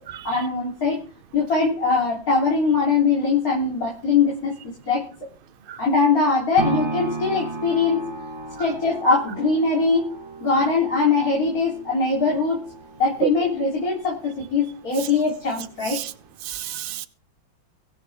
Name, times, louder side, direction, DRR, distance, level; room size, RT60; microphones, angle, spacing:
voice 1, 0.2-1.0 1.3-4.6 4.9-5.1 5.8-8.1 8.6-10.1 10.4-12.7 13.0-16.0, left 4 dB, 45° left, 4.1 m, -21 dB
sound 1, 6.6-14.7 15.2-15.3, right 3 dB, 15° right, 2.4 m, -35 dB
voice 2, 16.4-17.1, right 11 dB, 45° right, 0.7 m, -28 dB
23.5 x 7.9 x 3.6 m
omnidirectional pair, 2.1 m